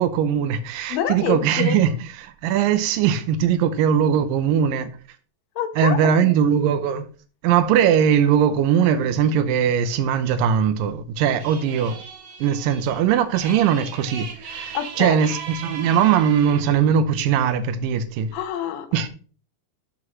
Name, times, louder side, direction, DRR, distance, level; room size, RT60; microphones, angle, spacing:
voice 1, 0.0-1.9 2.2-4.9 5.8-7.1 7.4-12.0 12.4-18.3 18.9-19.1, right 8 dB, 85° right, 2.5 m, -20 dB
voice 2, 0.9-1.8 5.6-6.3 14.7-15.2 18.3-18.9, left 9 dB, 75° left, 2.6 m, -27 dB
sound 1, 11.4-16.7, right 6 dB, 60° right, 2.6 m, -37 dB
12.5 x 6.3 x 3.0 m
omnidirectional pair, 4.0 m